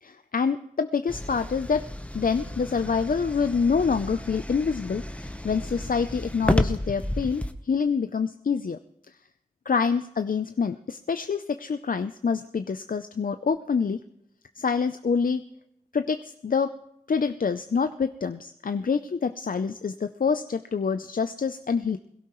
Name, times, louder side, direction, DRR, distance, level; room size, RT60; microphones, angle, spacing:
voice 1, 0.0-1.8 2.1-8.8 9.7-14.0 14.6-15.4 15.9-16.7 17.1-22.0, left 5 dB, 70° left, 9 dB, 0.5 m, -26 dB
sound 1, 1.1-7.5, left 1 dB, 10° left, 0.9 m, -31 dB
22.0 x 16.5 x 3.1 m, 0.75 s
wide cardioid pair, 55°, 15 cm